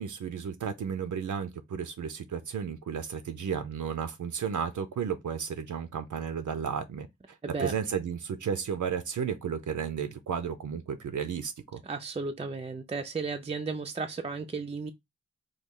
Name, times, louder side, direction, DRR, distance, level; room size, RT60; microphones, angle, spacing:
voice 1, 0.0-11.8, right 7 dB, 75° right, 0.5 m, -33 dB
voice 2, 7.4-7.7 11.8-14.9, right 4 dB, 20° right, 0.4 m, -34 dB
3.1 x 2.3 x 3.5 m
wide cardioid pair, 60°, 30 cm